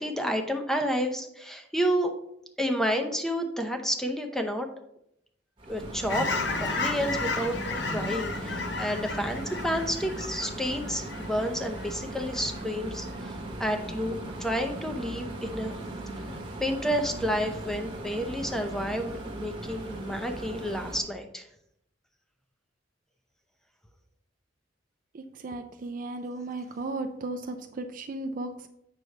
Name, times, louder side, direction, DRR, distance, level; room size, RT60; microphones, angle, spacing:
voice 1, 0.0-2.1 2.6-4.7 5.7-6.3 6.6-15.7 16.6-21.4, equal, ahead, 5 dB, 0.6 m, -30 dB
sound 1, 5.6-21.0, right 1 dB, 25° right, 1.1 m, -38 dB
Fowl / Chirp tweet, 6.1-11.9 12.3-12.6, left 3 dB, 60° left, 0.7 m, -33 dB
voice 2, 25.4-28.7, right 2 dB, 45° right, 7 dB, 0.4 m, -35 dB
7.8 x 6.0 x 3.3 m, 0.78 s
head